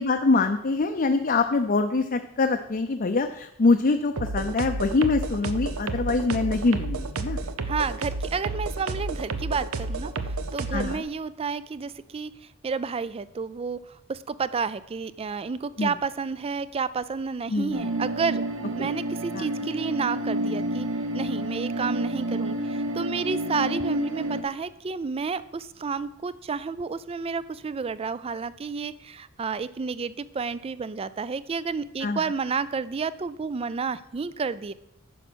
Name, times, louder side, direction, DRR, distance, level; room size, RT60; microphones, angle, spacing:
voice 1, 0.0-7.4 10.7-11.1 15.8-15.9 17.5-17.8 19.3-19.5 32.0-32.3, left 3 dB, 45° left, 5 dB, 0.5 m, -24 dB
sound 1, 4.2-11.0, right 3 dB, 85° right, 0.8 m, -31 dB
voice 2, 7.6-12.3 12.6-13.8 14.1-18.4 18.8-20.9 21.1-34.7, right 5 dB, 30° right, 16 dB, 0.4 m, -31 dB
sound 2, 17.7-24.4, right 1 dB, 65° right, 1.1 m, -29 dB
10.0 x 6.1 x 6.3 m, 0.82 s
head